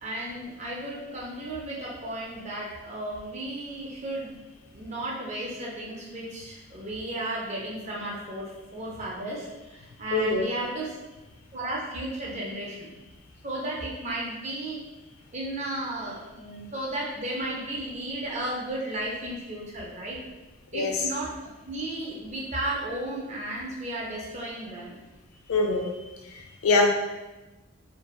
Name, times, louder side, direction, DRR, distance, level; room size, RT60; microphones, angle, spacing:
voice 1, 0.0-4.4 4.7-11.0 11.5-12.9 13.4-14.8 15.3-20.2 20.7-21.3 21.7-24.9, right 1 dB, 30° right, -4 dB, 0.5 m, -34 dB
voice 2, 10.1-10.5 20.7-21.0 25.5-26.0 26.2-26.9, left 3 dB, 75° left, 2 dB, 0.4 m, -24 dB
2.6 x 2.2 x 2.2 m, 1.1 s
head